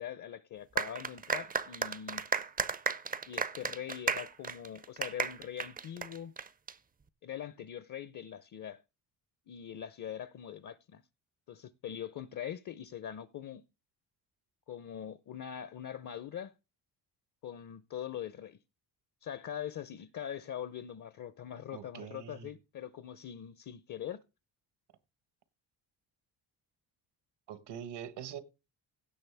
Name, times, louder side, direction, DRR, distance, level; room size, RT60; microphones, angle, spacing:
voice 1, 0.0-2.2 3.3-6.3 7.2-8.8 9.5-11.0 11.5-13.6 14.7-16.5 17.4-18.6 19.2-24.2, left 9 dB, 45° left, 0.7 m, -42 dB
sound 1, 0.8-6.7, right 5 dB, 20° right, 0.5 m, -34 dB
voice 2, 21.7-22.5 27.5-28.4, right 9 dB, 75° right, 1.4 m, -43 dB
16.5 x 6.6 x 3.4 m
cardioid pair, 105°, 40 cm